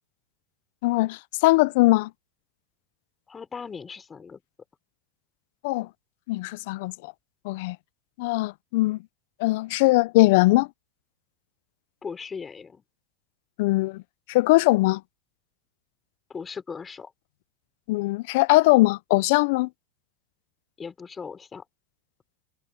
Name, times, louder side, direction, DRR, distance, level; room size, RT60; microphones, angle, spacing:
voice 1, 0.8-2.1 5.6-5.9 6.3-7.1 7.4-7.8 8.2-9.0 9.4-10.7 13.6-14.0 14.3-15.0 17.9-19.7, left 21 dB, 65° left, 0.5 m, -21 dB
voice 2, 3.3-4.4 12.0-12.8 16.3-17.1 20.8-21.6, left 5 dB, 20° left, 4.8 m, -38 dB
supercardioid pair, 135°, 0 cm